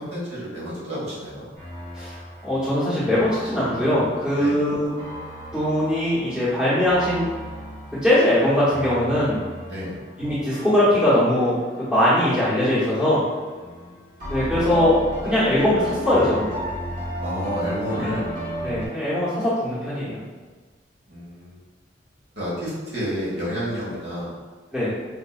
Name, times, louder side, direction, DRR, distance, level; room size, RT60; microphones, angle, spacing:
voice 1, 0.0-1.5 4.4-4.6 9.7-10.0 13.6-14.1 17.2-18.2 21.1-21.6 22.3-24.3, equal, 65° right, -7 dB, 1.3 m, -30 dB
sound 1, 1.5-12.0 12.4-13.8 14.2-18.9, right 1 dB, 45° right, 1.2 m, -34 dB
voice 2, 2.4-4.9 5.5-7.3 8.0-9.4 10.2-13.2 14.3-16.5 18.0-18.2 18.6-20.2 24.7-24.9, left 1 dB, 5° right, -11 dB, 1.0 m, -21 dB
4.8 x 2.6 x 2.3 m, 1.4 s
head